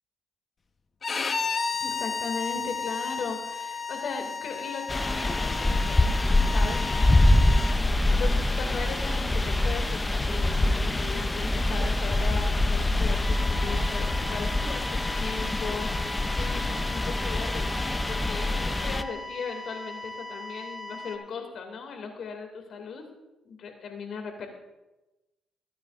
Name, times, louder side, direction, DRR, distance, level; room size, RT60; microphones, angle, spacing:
Bowed string instrument, 1.0-7.8, left 5 dB, 40° left, 0.9 m, -33 dB
voice 1, 1.8-6.2 6.5-6.9 8.0-23.0 23.4-24.5, left 5 dB, 65° left, 4 dB, 2.2 m, -37 dB
sound 1, 4.9-19.0, left 2 dB, 15° left, 0.5 m, -25 dB
sound 2, 13.2-21.2, left 2 dB, 10° right, 1.2 m, -40 dB
22.0 x 9.3 x 2.5 m, 1.0 s
cardioid pair, 90°, 0 cm